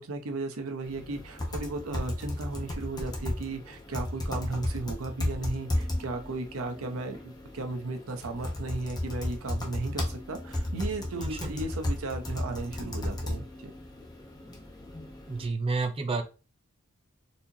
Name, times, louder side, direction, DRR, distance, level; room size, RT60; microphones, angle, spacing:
voice 1, 0.0-13.7, right 2 dB, 70° right, 5 dB, 0.7 m, -35 dB
sound 1, 0.8-15.5, left 1 dB, 20° left, 0.8 m, -35 dB
voice 2, 11.2-11.5 15.3-16.2, right 3 dB, 25° right, 6 dB, 0.5 m, -30 dB
4.2 x 2.8 x 2.6 m, 0.31 s
head